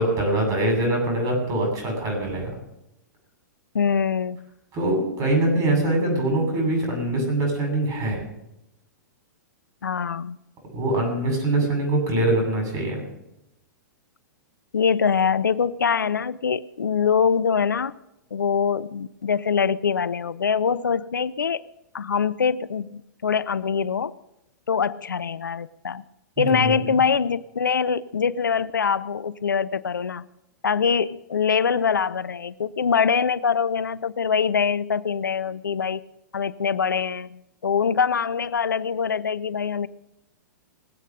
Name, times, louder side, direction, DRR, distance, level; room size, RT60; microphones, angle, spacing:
voice 1, 0.0-2.6 4.7-8.2 10.7-13.0 26.4-27.0, right 1 dB, 30° right, 2 dB, 7.8 m, -23 dB
voice 2, 3.7-4.5 9.8-10.4 14.7-17.9 18.3-21.6 21.9-24.1 24.7-26.0 26.4-30.3 30.6-36.0 36.3-39.9, left 6 dB, 80° left, 19 dB, 0.6 m, -23 dB
22.0 x 8.3 x 6.3 m, 0.87 s
figure-of-eight pair, 110°, 10 cm